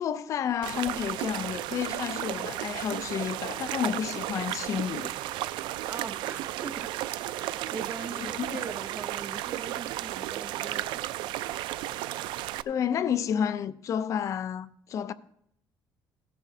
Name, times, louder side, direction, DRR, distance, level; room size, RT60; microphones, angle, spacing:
voice 1, 0.0-5.3 8.2-8.5 12.7-15.1, left 8 dB, 40° left, 0.5 m, -31 dB
sound 1, 0.6-12.6, right 14 dB, 80° right, 0.4 m, -34 dB
voice 2, 5.9-6.9 7.3-11.1, right 5 dB, 30° right, 0.6 m, -41 dB
16.0 x 10.0 x 2.7 m
cardioid pair, 160°, 8 cm